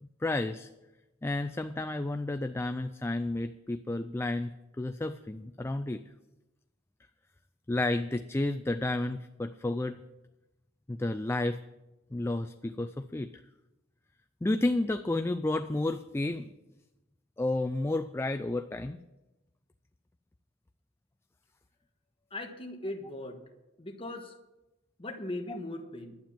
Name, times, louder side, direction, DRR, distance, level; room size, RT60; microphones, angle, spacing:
voice 1, 0.0-0.7 1.2-4.5 4.8-6.0 7.7-10.0 10.9-11.6 12.1-13.3 14.4-16.5 17.4-19.0, left 2 dB, 15° left, 9 dB, 0.3 m, -31 dB
voice 2, 22.3-23.4 23.8-24.3 25.0-26.2, left 1 dB, 30° left, 4 dB, 1.3 m, -39 dB
11.5 x 9.0 x 7.2 m, 1.0 s
head